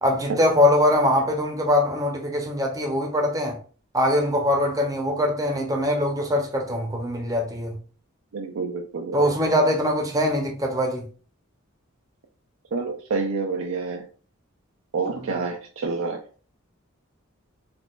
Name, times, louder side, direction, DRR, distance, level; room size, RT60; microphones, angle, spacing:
voice 1, 0.0-3.6 3.9-7.8 9.1-11.1 15.1-15.4, left 1 dB, 15° right, 0.6 m, -22 dB
voice 2, 8.3-9.2 12.7-14.1 14.9-16.2, right 4 dB, 75° right, 0.4 m, -28 dB
3.8 x 2.3 x 2.3 m
head